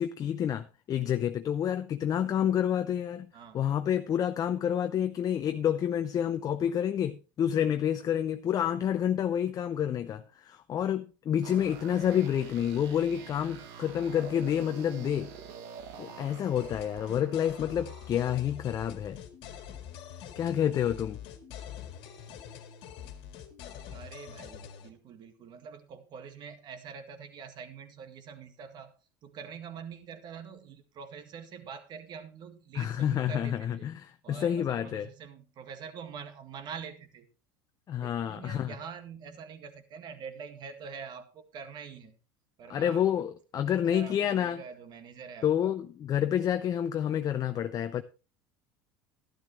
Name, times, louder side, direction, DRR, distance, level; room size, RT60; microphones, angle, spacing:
voice 1, 0.0-3.3 3.5-15.3 16.0-19.2 20.3-21.2 32.7-35.1 37.9-38.7 42.7-44.6 45.4-48.0, left 9 dB, 40° left, 0.6 m, -29 dB
sound 1, 11.4-18.1, right 7 dB, 70° right, 1.6 m, -46 dB
sound 2, 16.6-24.9, left 9 dB, 65° left, 1.7 m, -45 dB
voice 2, 23.9-28.9 29.2-33.9 34.2-37.3 38.0-42.2 42.6-43.0 43.7-45.7, right 6 dB, 50° right, 1.8 m, -45 dB
12.0 x 11.5 x 3.2 m
hypercardioid pair, 90°, 10 cm